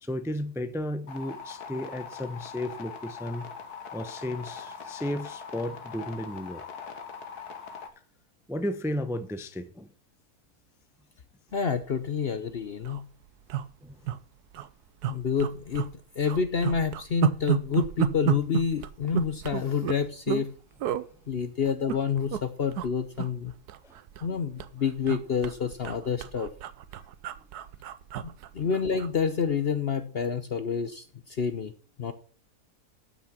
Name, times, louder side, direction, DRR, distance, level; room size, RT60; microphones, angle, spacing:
voice 1, 0.0-3.5 3.9-6.6 8.5-9.9 13.8-14.0 23.8-24.0 28.6-28.8, left 1 dB, 5° right, 0.6 m, -34 dB
sound 1, 1.1-7.9, left 6 dB, 80° left, 1.9 m, -41 dB
voice 2, 11.5-13.0 15.1-15.9 16.2-20.5 21.3-23.5 24.2-26.5 28.5-31.7 32.0-32.1, left 6 dB, 50° left, 0.8 m, -28 dB
sound 2, 12.0-12.2 12.5-12.6 12.8-13.0 13.5-14.2 14.5-14.7 15.0-15.9 16.3-20.5 20.8-21.0 21.7-22.4 22.7-22.9 23.2-24.3 24.6-29.1 29.5-29.7, right 11 dB, 85° right, 1.3 m, -31 dB
12.0 x 6.2 x 5.8 m
omnidirectional pair, 1.7 m